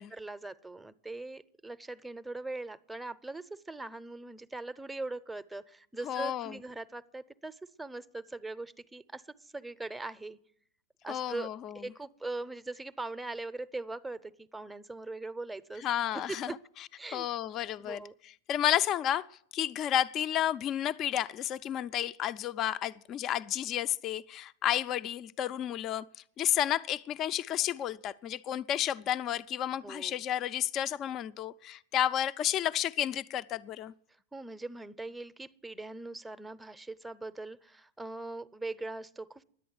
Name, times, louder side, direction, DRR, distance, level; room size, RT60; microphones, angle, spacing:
voice 1, 0.1-10.4 11.0-15.9 16.1-16.6 17.0-17.3 17.8-18.1 29.8-30.2 34.3-39.4, right 2 dB, 5° right, 0.6 m, -41 dB
voice 2, 6.0-6.6 11.1-11.8 15.8-16.6 17.1-19.3 19.5-26.0 26.4-33.9, left 11 dB, 40° left, 0.4 m, -31 dB
11.0 x 8.4 x 9.5 m
hypercardioid pair, 100°, 0 cm